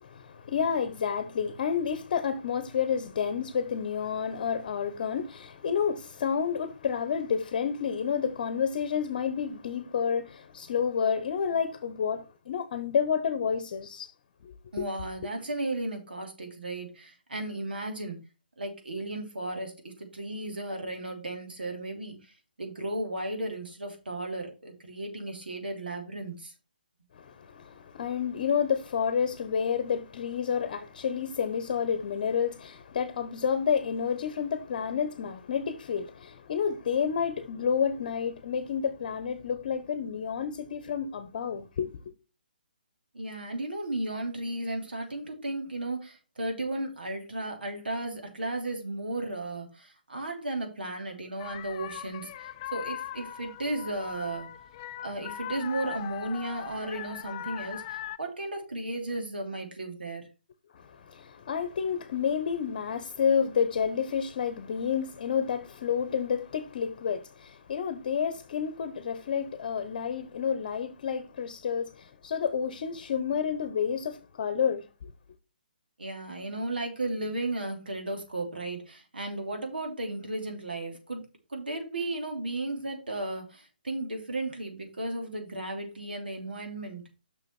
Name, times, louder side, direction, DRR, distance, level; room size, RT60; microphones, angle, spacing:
voice 1, 0.0-14.1 14.4-14.9 27.2-41.9 60.7-75.1, left 7 dB, 50° left, 0.9 m, -30 dB
voice 2, 14.7-18.2 18.6-26.5 43.1-54.5 55.0-60.3 76.0-81.2 81.5-87.0, right 2 dB, 80° right, 3.1 m, -35 dB
sound 1, 51.4-58.2, left 11 dB, 30° left, 0.4 m, -40 dB
6.8 x 6.2 x 4.4 m
figure-of-eight pair, 140°, 5 cm